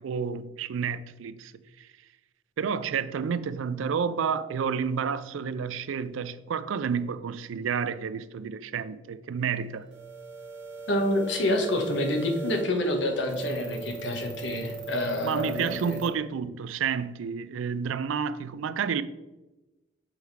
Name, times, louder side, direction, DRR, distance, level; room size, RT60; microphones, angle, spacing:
voice 1, 0.0-1.9 2.6-9.9 15.2-19.0, right 6 dB, 85° right, 0.4 m, -30 dB
sound 1, 9.9-16.1, right 5 dB, 60° right, 1.0 m, -40 dB
voice 2, 10.9-16.0, left 1 dB, 65° left, 1.0 m, -27 dB
6.2 x 3.6 x 4.6 m
head